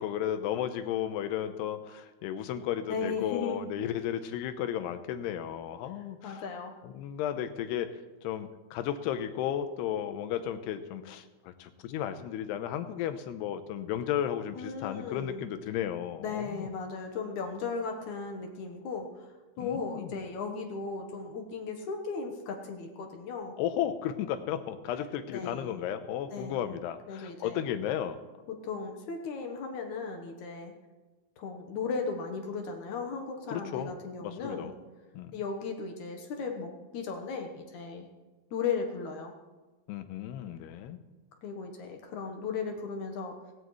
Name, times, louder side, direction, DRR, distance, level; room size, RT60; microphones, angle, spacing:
voice 1, 0.0-6.4 6.8-7.9 8.2-16.6 19.6-20.1 23.6-28.2 33.5-33.9 34.2-34.7 35.1-35.4 39.9-41.0, left 10 dB, 85° left, 10 dB, 2.9 m, -34 dB
voice 2, 2.9-3.6 6.2-6.7 14.6-15.4 16.2-19.3 19.6-23.6 25.3-25.8 26.3-26.8 27.1-27.6 28.5-30.7 31.4-34.7 35.3-38.1 38.5-39.3 41.4-43.4, left 5 dB, 65° left, 3 dB, 2.1 m, -36 dB
17.0 x 17.0 x 3.2 m, 1.2 s
omnidirectional pair, 4.7 m